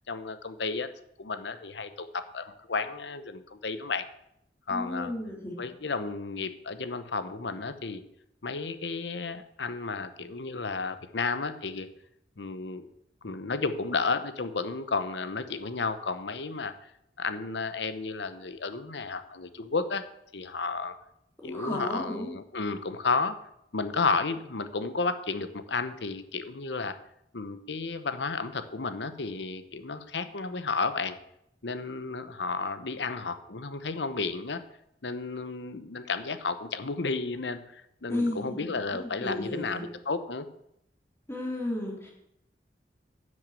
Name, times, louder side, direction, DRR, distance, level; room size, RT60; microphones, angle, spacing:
voice 1, 0.1-0.9 1.2-4.1 4.7-5.1 5.6-8.0 8.4-11.9 12.4-12.9 13.2-16.7 17.2-20.0 20.3-21.0 21.4-23.4 23.7-27.0 27.3-31.2 31.6-34.6 35.0-40.5, left 4 dB, 80° left, 11 dB, 0.9 m, -32 dB
voice 2, 4.7-5.6 21.4-22.3 38.1-38.5 38.9-39.9 41.3-42.1, left 1 dB, 15° left, -1 dB, 2.8 m, -33 dB
10.5 x 6.5 x 7.0 m, 0.78 s
head